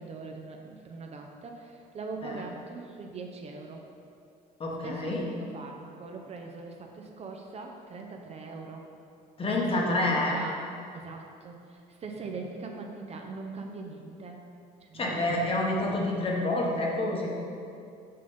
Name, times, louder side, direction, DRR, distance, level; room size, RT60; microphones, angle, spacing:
voice 1, 0.0-3.9 4.8-5.1 5.5-8.9 9.6-10.0 10.3-10.6 10.9-14.4 14.8-15.7, right 4 dB, 40° right, 2 dB, 0.6 m, -41 dB
voice 2, 4.6-5.3 9.4-10.4 14.9-17.3, left 2 dB, 35° left, -2 dB, 1.1 m, -28 dB
5.6 x 5.0 x 3.9 m, 2.5 s
cardioid pair, 110°, 17 cm